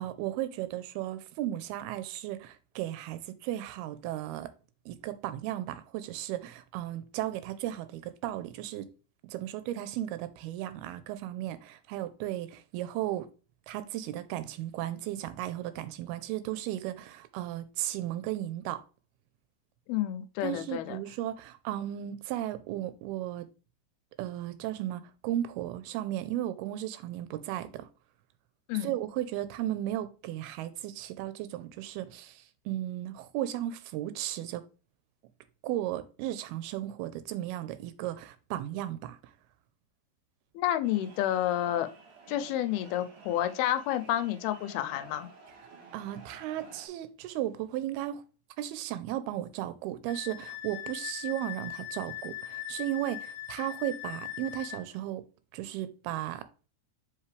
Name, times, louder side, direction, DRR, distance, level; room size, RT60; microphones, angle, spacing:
voice 1, 0.0-4.5 4.9-8.9 9.2-13.3 13.7-18.8 20.4-23.5 24.2-27.9 28.7-34.6 35.6-39.2 45.9-48.2 48.6-55.2 55.5-56.5, right 13 dB, 90° right, 2.6 m, -35 dB
voice 2, 19.9-21.0 28.7-28.9 40.6-41.9 42.3-45.3, left 12 dB, 85° left, 2.5 m, -30 dB
sound 1, 40.8-46.9, right 4 dB, 60° right, 2.5 m, -52 dB
Wind instrument woodwind instrument, 50.1-54.8, left 13 dB, 50° left, 1.9 m, -40 dB
5.7 x 5.2 x 3.2 m
omnidirectional pair, 4.4 m